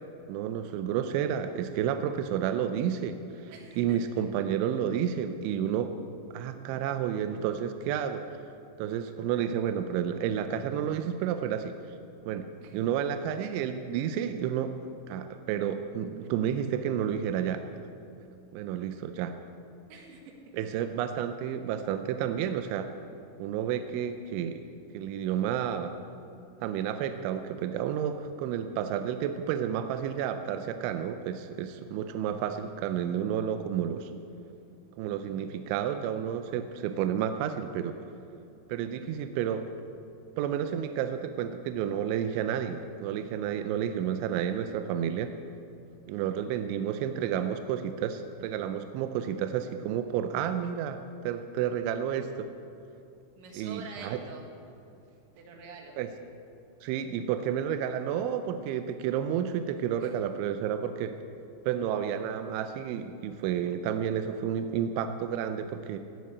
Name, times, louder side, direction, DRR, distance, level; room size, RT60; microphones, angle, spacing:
voice 1, 0.3-5.9 6.3-8.3 8.8-11.8 12.3-12.5 12.7-14.8 15.1-17.6 18.5-19.4 20.5-22.9 23.4-24.6 24.9-25.9 26.6-34.1 35.0-38.0 38.7-39.7 40.4-45.3 46.1-52.5 53.6-54.2 56.0-56.1 56.8-61.2 61.7-66.0, right 9 dB, 85° right, 8 dB, 2.7 m, -31 dB
voice 2, 3.5-4.2 12.6-12.8 19.9-20.5 45.9-46.3 53.4-54.5 55.3-56.0 60.0-60.1, right 5 dB, 70° right, 1 dB, 3.8 m, -47 dB
17.0 x 7.6 x 8.3 m, 2.6 s
omnidirectional pair, 6.0 m